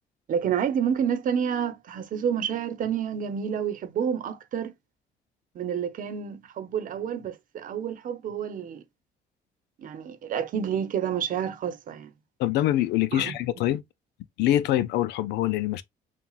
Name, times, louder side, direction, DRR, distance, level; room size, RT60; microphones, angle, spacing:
voice 1, 0.3-4.7 5.5-8.8 9.8-12.1 13.1-13.3, right 8 dB, 55° right, 0.9 m, -29 dB
voice 2, 12.4-13.8 14.4-15.8, left 13 dB, 85° left, 0.5 m, -24 dB
7.1 x 2.4 x 2.4 m
cardioid pair, 110°, 17 cm